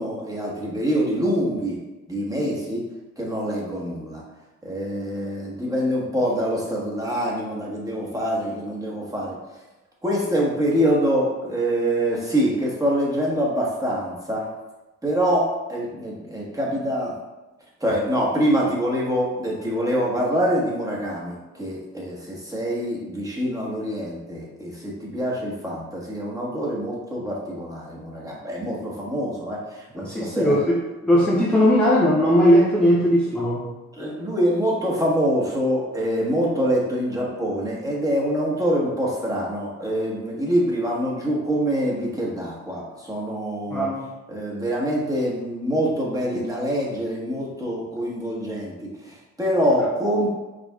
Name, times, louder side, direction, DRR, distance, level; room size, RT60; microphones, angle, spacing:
voice 1, 0.0-1.8 2.1-2.8 3.2-4.2 4.6-9.4 10.0-14.5 15.0-17.1 17.8-29.6 29.9-30.6 33.9-43.9 44.3-48.7 49.0-50.3, equal, 10° right, -5 dB, 1.3 m, -25 dB
voice 2, 30.0-33.7 43.7-44.0, equal, 5° left, -4 dB, 0.6 m, -19 dB
5.1 x 3.4 x 2.3 m, 1.1 s
cardioid pair, 90°, 30 cm